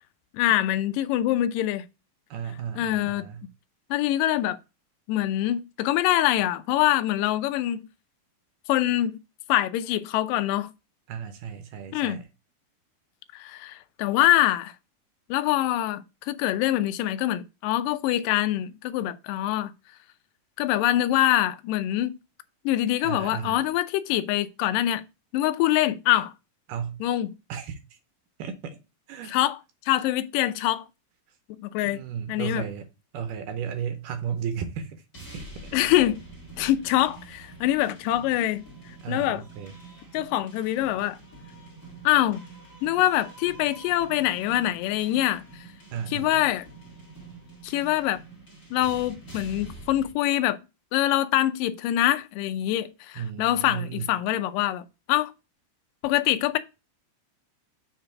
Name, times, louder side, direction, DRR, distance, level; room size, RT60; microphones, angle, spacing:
voice 1, 0.3-1.9 2.8-3.3 3.9-4.6 5.1-7.8 8.7-9.2 9.5-10.7 11.9-12.2 13.3-14.7 15.3-19.7 20.6-22.1 22.7-25.1 25.3-26.3 27.0-27.3 29.3-29.6 29.9-30.9 31.5-32.0 32.3-32.6 35.7-36.2 36.6-38.6 39.1-39.4 40.1-41.2 42.0-42.5 42.8-45.4 46.1-46.7 47.6-48.2 48.7-50.6 50.9-55.3 56.0-56.6, left 14 dB, 80° left, 2.1 m, -24 dB
voice 2, 2.3-3.4 11.1-12.3 23.0-23.6 26.7-27.0 27.5-28.0 28.4-28.8 29.1-29.4 31.9-32.9 33.1-35.0 35.3-35.7 39.0-39.8 45.9-46.4 53.2-54.1, right 7 dB, 75° right, 2.1 m, -34 dB
sound 1, 35.1-50.1, right 3 dB, 35° left, 1.3 m, -46 dB
6.8 x 3.4 x 5.8 m
omnidirectional pair, 4.2 m